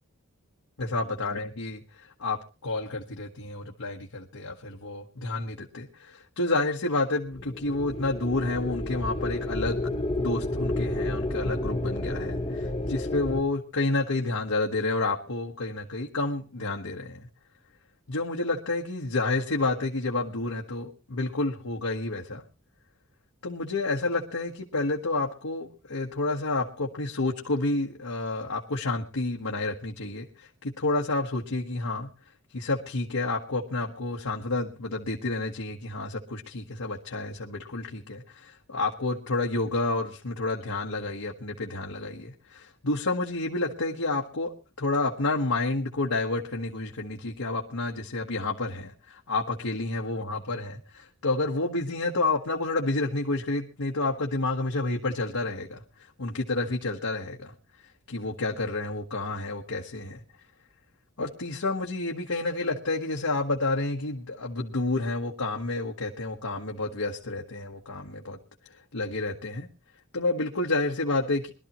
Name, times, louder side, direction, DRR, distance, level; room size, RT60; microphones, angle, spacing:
voice 1, 0.8-2.4 2.6-9.9 10.2-17.3 18.1-22.4 23.4-32.1 32.5-44.5 44.8-57.5 57.8-60.2 61.2-68.4 68.7-69.7 70.1-71.5, left 2 dB, 80° left, 0 dB, 1.3 m, -30 dB
sound 1, 7.3-13.4, left 1 dB, 25° left, 1.2 m, -30 dB
22.0 x 12.5 x 3.0 m, 0.32 s
head